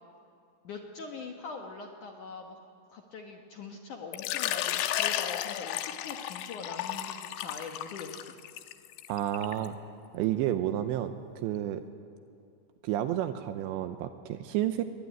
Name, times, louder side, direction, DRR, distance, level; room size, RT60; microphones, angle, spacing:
voice 1, 0.6-2.6 2.9-8.4, left 4 dB, 70° left, 2 dB, 1.9 m, -43 dB
Water / Liquid, 4.1-9.7, left 12 dB, 90° left, 3.4 m, -33 dB
voice 2, 9.1-9.8 10.1-11.8 12.8-14.8, right 12 dB, 80° right, 9 dB, 2.8 m, -30 dB
22.5 x 21.5 x 9.5 m, 2.5 s
omnidirectional pair, 5.5 m